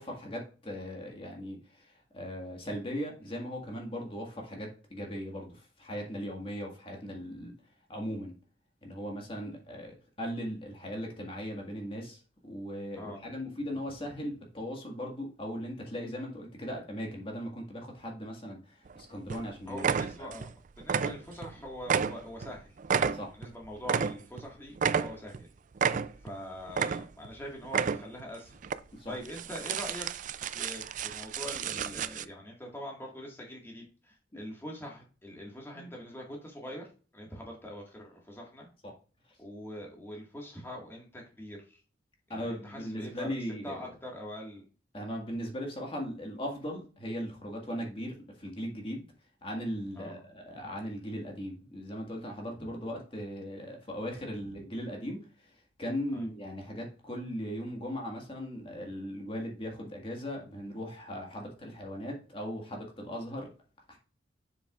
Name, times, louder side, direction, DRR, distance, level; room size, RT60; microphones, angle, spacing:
voice 1, 0.0-7.5 7.9-8.3 8.8-19.8 20.2-20.3 23.1-23.3 25.9-26.0 28.9-29.1 35.7-35.9 42.3-43.9 44.9-49.0 49.4-55.5 55.8-63.5 63.9-64.0, equal, 30° left, 0 dB, 1.7 m, -38 dB
voice 2, 13.0-13.3 19.7-20.5 20.8-22.7 23.3-25.5 26.2-28.6 29.1-30.1 30.5-36.9 37.1-38.7 39.4-41.8 42.3-43.3 43.6-44.7 50.0-50.2 52.6-52.7 56.1-56.3, equal, 15° left, -1 dB, 1.7 m, -43 dB
sound 1, 18.9-19.0 19.3-19.5 19.8-20.5 20.8-21.5 21.8-24.4 24.8-25.4 25.8-26.3 26.7-27.3 27.6-28.2 28.6-28.8 29.3-32.3, right 6 dB, 45° right, 0.4 m, -31 dB
7.6 x 6.9 x 2.4 m, 0.37 s
head